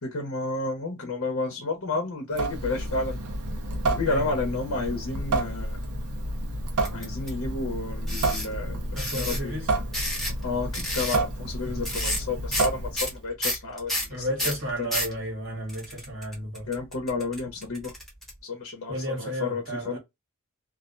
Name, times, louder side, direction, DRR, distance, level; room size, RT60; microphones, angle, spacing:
voice 1, 0.0-3.2 3.9-5.8 6.9-9.6 10.4-14.5 14.8-14.9 16.7-17.9 18.4-20.0, left 3 dB, 60° left, 0.8 m, -31 dB
Water tap faucet / Sink (filling or washing) / Drip, 2.3-13.2, right 2 dB, 75° right, 0.7 m, -30 dB
sound 1, 6.8-7.3 8.1-8.5 9.0-9.4 9.9-10.4 10.7-11.2 11.8-12.2 12.5-12.7 12.9-15.1 15.7-18.3, left 1 dB, ahead, 0.9 m, -30 dB
voice 2, 8.9-9.7 14.1-16.7 18.9-20.0, equal, 60° right, 1.4 m, -33 dB
2.4 x 2.1 x 2.5 m
head